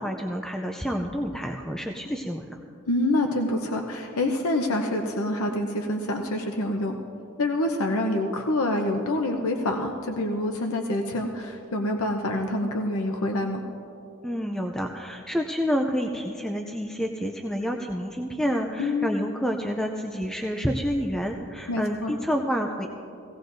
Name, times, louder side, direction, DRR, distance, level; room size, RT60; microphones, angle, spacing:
voice 1, 0.0-2.6 14.2-22.9, equal, 5° left, 3 dB, 0.4 m, -28 dB
voice 2, 2.9-7.0 7.4-13.6 18.8-19.1 21.7-22.1, left 1 dB, 90° left, 3 dB, 0.8 m, -26 dB
17.5 x 17.0 x 2.6 m, 2.7 s
head